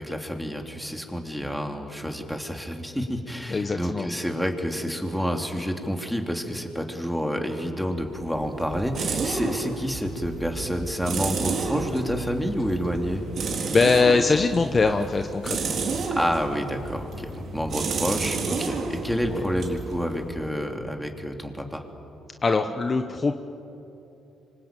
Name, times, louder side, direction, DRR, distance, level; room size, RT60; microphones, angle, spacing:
voice 1, 0.0-13.2 16.1-21.8, equal, ahead, 3 dB, 3.3 m, -29 dB
voice 2, 3.5-4.1 13.5-15.8 19.1-19.5 22.4-23.3, left 4 dB, 35° left, 6 dB, 1.2 m, -23 dB
sound 1, 8.0-20.7, right 4 dB, 60° right, 3.5 m, -31 dB
26.0 x 25.0 x 9.2 m, 2.9 s
cardioid pair, 90°, 0 cm